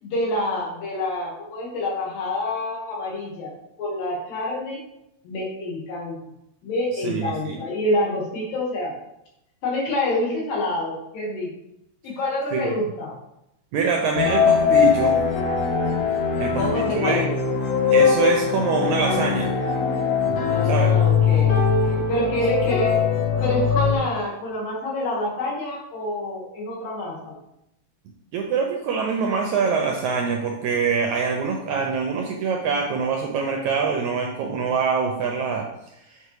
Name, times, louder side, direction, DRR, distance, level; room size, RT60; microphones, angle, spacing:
voice 1, 0.0-3.5 3.8-4.8 5.2-6.2 6.6-8.9 9.6-11.5 12.0-13.1 16.3-17.3 20.5-23.0 23.4-27.4, left 1 dB, 75° left, -3 dB, 3.6 m, -27 dB
voice 2, 7.0-7.6 12.5-12.7 13.7-15.2 16.4-16.6 16.9-17.2 17.9-19.5 20.6-20.9 28.3-35.7, right 5 dB, 80° right, 1 dB, 1.7 m, -24 dB
sound 1, 14.2-24.0, left 6 dB, 60° left, 2.0 m, -21 dB
7.8 x 5.5 x 3.3 m, 0.83 s
omnidirectional pair, 4.0 m